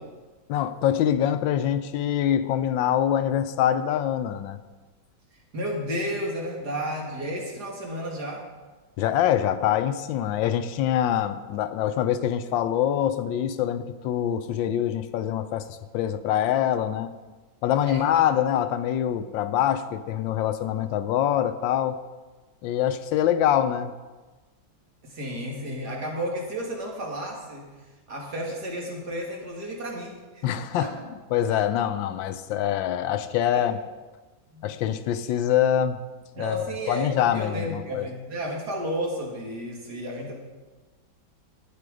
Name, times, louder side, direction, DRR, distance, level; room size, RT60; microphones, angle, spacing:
voice 1, 0.5-4.6 9.0-17.1 17.6-22.0 22.6-23.9 30.4-30.9 31.3-33.8 34.6-36.0 36.4-38.1, left 10 dB, 80° left, 11 dB, 1.3 m, -24 dB
voice 2, 5.5-8.5 11.2-11.3 17.8-18.2 25.0-27.7 28.1-30.5 30.8-30.9 33.5-33.7 34.5-34.7 36.4-40.3, equal, 55° right, -1 dB, 2.6 m, -32 dB
12.0 x 9.5 x 4.9 m, 1.3 s
omnidirectional pair, 2.1 m